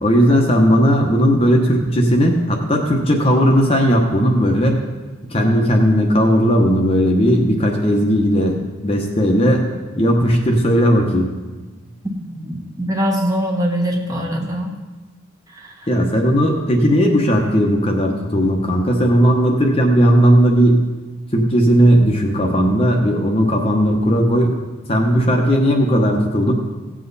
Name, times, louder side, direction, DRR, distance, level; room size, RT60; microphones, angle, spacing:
voice 1, 0.0-4.8 5.3-9.6 10.0-11.3 15.9-20.8 21.3-24.6 24.8-26.5, equal, 30° left, 1 dB, 1.0 m, -16 dB
voice 2, 12.0-14.7 15.5-15.9, equal, 15° right, 0 dB, 1.2 m, -23 dB
16.5 x 7.5 x 4.1 m, 1.3 s
head